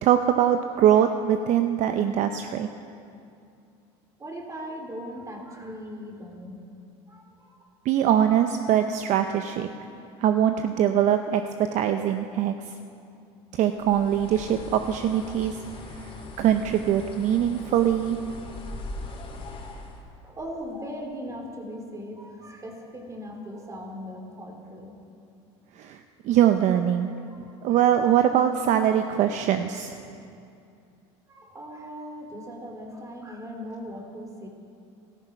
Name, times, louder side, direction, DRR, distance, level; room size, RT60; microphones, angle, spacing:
voice 1, 0.0-2.7 7.8-9.7 10.2-12.7 13.5-15.6 16.0-16.1 16.4-18.2 25.8-27.1 27.6-30.0, right 10 dB, 55° right, 8 dB, 0.7 m, -22 dB
voice 2, 4.2-6.6 7.1-7.6 20.2-24.9 27.4-27.9 31.3-34.5, equal, 20° right, 3 dB, 2.8 m, -39 dB
Bird, 13.8-20.0, left 2 dB, 40° left, 2.9 m, -40 dB
14.5 x 13.5 x 5.9 m, 2.5 s
supercardioid pair, 100°, 15 cm